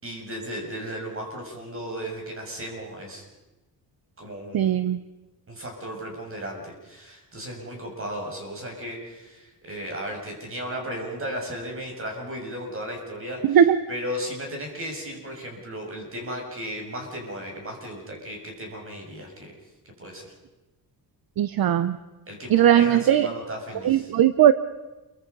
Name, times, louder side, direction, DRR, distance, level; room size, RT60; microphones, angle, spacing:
voice 1, 0.0-3.3 4.2-4.8 5.5-13.6 13.9-19.5 20.0-20.2 22.3-24.1, equal, 35° right, 1 dB, 7.0 m, -35 dB
voice 2, 4.5-5.0 13.4-13.8 21.4-22.0 22.5-23.3 23.8-24.5, right 10 dB, 60° right, 13 dB, 0.9 m, -18 dB
28.5 x 24.0 x 5.5 m, 1.1 s
cardioid pair, 135°, 40 cm